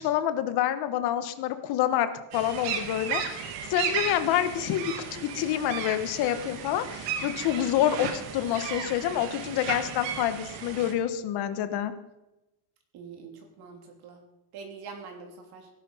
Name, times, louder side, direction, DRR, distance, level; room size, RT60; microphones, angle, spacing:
voice 1, 0.0-11.9, left 11 dB, 60° left, 11 dB, 1.3 m, -27 dB
sound 1, 2.3-10.9, right 7 dB, 70° right, 2.2 m, -35 dB
voice 2, 12.9-14.2 14.5-15.7, right 5 dB, 55° right, 3 dB, 3.5 m, -44 dB
17.0 x 11.0 x 5.6 m, 0.94 s
cardioid pair, 180°, 44 cm